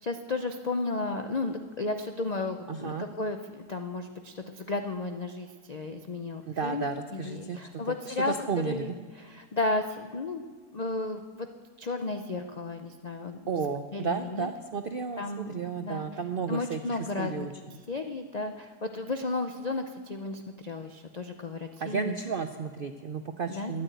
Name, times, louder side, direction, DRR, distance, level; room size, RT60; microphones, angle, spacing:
voice 1, 0.0-8.3 8.6-10.4 10.7-11.5 11.8-13.4 13.9-14.5 15.2-16.1 16.5-17.5 17.9-22.2 23.5-23.7, left 3 dB, 80° left, 6 dB, 0.3 m, -33 dB
voice 2, 2.7-3.1 6.5-8.9 13.5-17.5 21.8-23.8, right 5 dB, 75° right, 8 dB, 0.5 m, -33 dB
13.0 x 9.6 x 9.1 m, 1.5 s
omnidirectional pair, 1.7 m